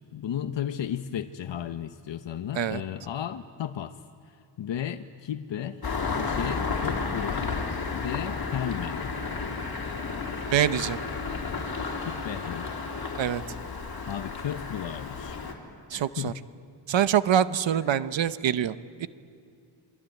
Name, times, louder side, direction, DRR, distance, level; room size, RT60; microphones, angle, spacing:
voice 1, 0.0-5.8 6.2-7.6 7.9-9.1 12.0-12.7 14.0-15.4 15.9-16.4, left 10 dB, 65° left, 9 dB, 0.9 m, -34 dB
Engine starting, 5.8-15.5, left 4 dB, 50° left, 3.5 m, -32 dB
voice 2, 10.5-11.0 13.2-13.4 15.9-16.3 16.9-19.1, right 9 dB, 70° right, 13 dB, 1.0 m, -25 dB
27.0 x 22.5 x 9.2 m, 2.4 s
cardioid pair, 95°, 46 cm